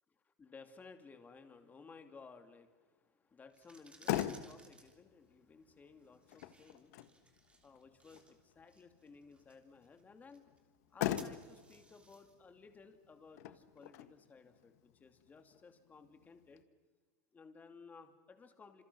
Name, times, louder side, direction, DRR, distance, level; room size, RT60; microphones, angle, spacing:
voice 1, 0.4-7.3 7.6-10.4 10.9-16.6 17.3-18.8, left 4 dB, 20° left, 7 dB, 2.6 m, -58 dB
sound 1, 3.4-14.3, right 3 dB, 10° right, 3.3 m, -64 dB
Motor vehicle (road), 3.7-16.6, left 13 dB, 75° left, 1.5 m, -44 dB
29.0 x 27.0 x 6.2 m, 1.3 s
supercardioid pair, 135°, 9 cm